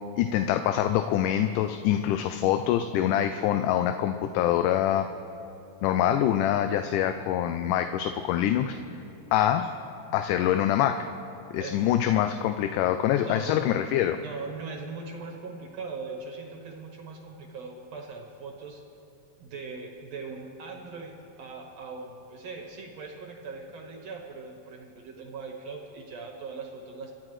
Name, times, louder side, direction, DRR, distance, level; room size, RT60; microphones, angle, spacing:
voice 1, 0.2-5.1 5.8-8.8 9.3-9.6 10.1-11.1 11.5-14.2, left 11 dB, 85° left, 8 dB, 2.1 m, -25 dB
voice 2, 11.6-12.0 13.2-18.8 19.4-27.1, right 4 dB, 60° right, 1 dB, 2.0 m, -40 dB
26.5 x 11.5 x 3.2 m, 2.8 s
omnidirectional pair, 3.7 m